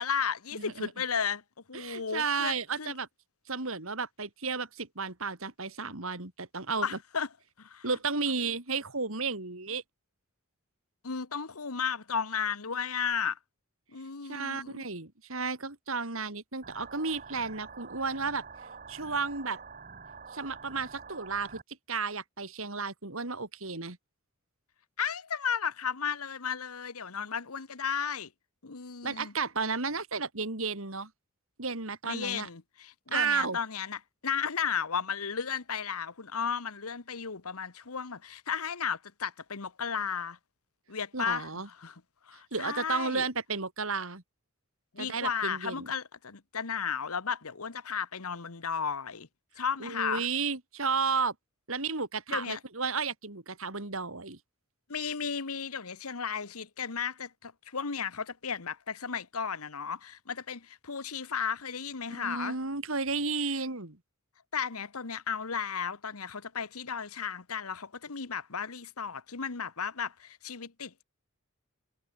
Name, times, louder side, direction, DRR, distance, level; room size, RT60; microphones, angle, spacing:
voice 1, 0.0-1.4 1.7-2.9 6.8-7.3 7.6-7.9 11.0-13.4 13.9-14.8 25.0-28.3 28.6-29.3 32.0-40.4 40.9-43.3 44.9-49.3 49.6-50.3 52.3-52.6 54.9-62.6 64.5-71.0, left 6 dB, 85° left, 1.3 m, -34 dB
voice 2, 0.5-0.9 1.7-3.1 3.5-7.0 7.8-9.8 14.3-18.4 18.9-19.6 20.3-21.6 21.9-24.0 29.0-31.1 31.6-32.5 33.1-33.6 41.1-41.7 42.5-44.2 45.0-45.9 49.8-51.3 51.7-54.4 62.1-64.0, right 4 dB, 65° right, 3.1 m, -33 dB
sound 1, 16.6-21.6, right 5 dB, 40° right, 4.1 m, -47 dB
head